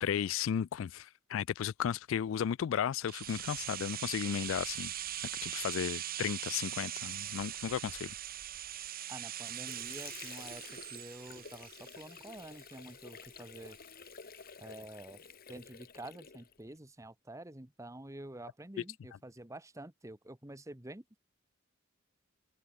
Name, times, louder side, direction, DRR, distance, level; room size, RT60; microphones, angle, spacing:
voice 1, 0.0-4.9 5.4-8.1, left 8 dB, 75° left, 0.3 m, -34 dB
sound 1, 3.1-12.9 13.2-13.3, right 12 dB, 45° right, 1.1 m, -41 dB
Water / Sink (filling or washing), 9.1-16.8, left 6 dB, 50° left, 1.2 m, -51 dB
voice 2, 9.1-13.8 14.6-15.2 15.5-21.2, right 1 dB, 15° right, 1.3 m, -48 dB
head